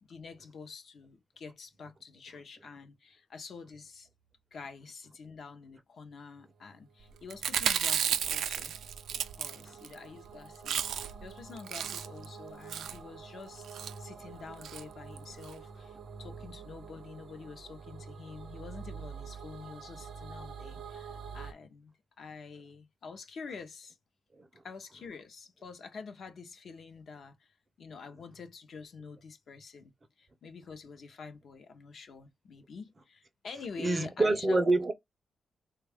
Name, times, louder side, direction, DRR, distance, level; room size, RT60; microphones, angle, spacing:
voice 1, 0.0-4.1 4.5-8.7 9.3-13.7 14.0-24.0 24.6-27.5 27.8-29.9 30.2-34.8, left 5 dB, 55° left, 0.6 m, -47 dB
sound 1, 6.6-21.5, right 5 dB, 65° right, 0.7 m, -47 dB
Chewing mastication, 7.3-9.9 10.2-10.3 10.5-11.2 11.6-12.2 12.7-13.0 13.6-13.9 14.6-14.8 15.2-15.3 15.4-15.5, right 9 dB, 85° right, 0.3 m, -32 dB
voice 2, 33.8-34.9, right 2 dB, 25° right, 0.5 m, -26 dB
3.4 x 2.3 x 3.4 m
wide cardioid pair, 150°, 0 cm